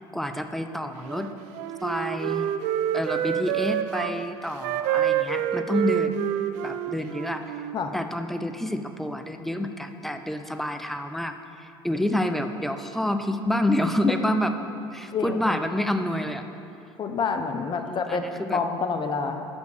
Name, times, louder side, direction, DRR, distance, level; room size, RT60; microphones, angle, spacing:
voice 1, 0.0-1.3 1.8-2.5 2.9-6.2 6.6-7.6 7.9-14.5 14.9-16.4 17.9-18.6, left 1 dB, ahead, 7 dB, 0.5 m, -28 dB
Wind instrument woodwind instrument, 1.0-4.1 4.6-7.8, right 10 dB, 70° right, 0.4 m, -27 dB
voice 2, 15.1-15.6 17.0-19.4, left 5 dB, 35° left, 6 dB, 0.7 m, -28 dB
6.0 x 5.2 x 6.7 m, 2.6 s
hypercardioid pair, 70°, 13 cm